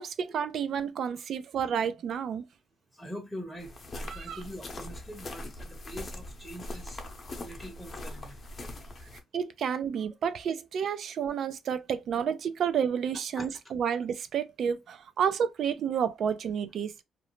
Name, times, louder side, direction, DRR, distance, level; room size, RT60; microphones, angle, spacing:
voice 1, 0.0-2.4 4.1-4.4 9.3-16.9, right 7 dB, 65° right, 0.4 m, -30 dB
voice 2, 2.9-8.4 13.4-13.5, equal, 5° right, 0.7 m, -43 dB
sound 1, 3.6-9.2, left 1 dB, 40° left, 0.7 m, -41 dB
2.5 x 2.0 x 3.0 m
cardioid pair, 90°, 0 cm